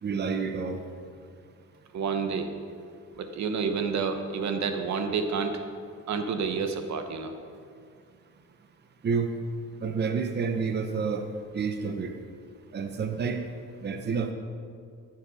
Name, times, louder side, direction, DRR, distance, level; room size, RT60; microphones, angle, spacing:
voice 1, 0.0-0.8 9.0-9.3 9.8-11.3 11.5-12.1 12.7-13.4 13.8-14.3, right 5 dB, 35° right, 6 dB, 0.8 m, -29 dB
voice 2, 1.9-2.5 3.2-5.6 6.1-7.3, right 5 dB, 65° right, 7 dB, 1.1 m, -29 dB
14.0 x 7.6 x 4.9 m, 2.2 s
cardioid pair, 90°, 30 cm